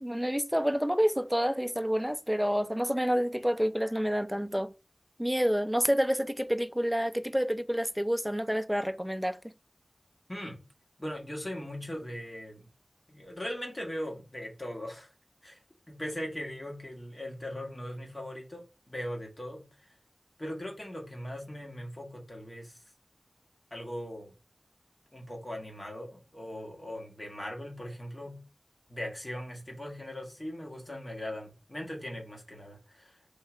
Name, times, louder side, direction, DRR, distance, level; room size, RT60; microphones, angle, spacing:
voice 1, 0.0-4.7 5.2-9.4, equal, 5° right, 0.5 m, -28 dB
voice 2, 10.3-10.6 11.0-12.7 13.1-15.1 15.4-15.6 15.9-19.9 20.4-22.8 23.7-24.3 25.1-28.4 28.9-33.2, equal, 30° left, 1.6 m, -39 dB
3.7 x 2.8 x 4.7 m
wide cardioid pair, 45°, 0 cm